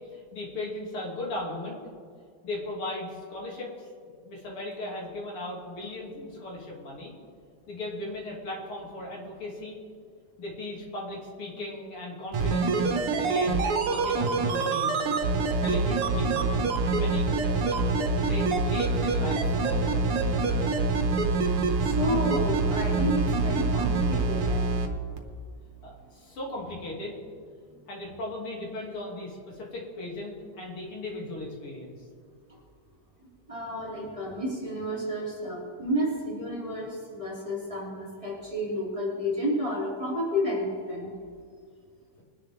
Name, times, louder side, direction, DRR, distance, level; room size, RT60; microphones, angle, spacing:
voice 1, 0.1-1.8 2.4-3.9 4.2-7.2 7.7-9.8 10.4-12.9 13.2-15.0 15.6-16.6 16.8-17.9 18.2-20.2 25.8-27.1 27.9-32.0, left 2 dB, 85° left, -3 dB, 3.5 m, -37 dB
sound 1, 12.3-24.9 25.2-25.3, right 3 dB, 90° right, 2.1 m, -25 dB
voice 2, 21.7-24.7 27.7-27.8 32.5-32.6 33.5-41.1, equal, 15° right, -6 dB, 2.9 m, -31 dB
22.0 x 10.5 x 3.6 m, 2.1 s
omnidirectional pair, 2.4 m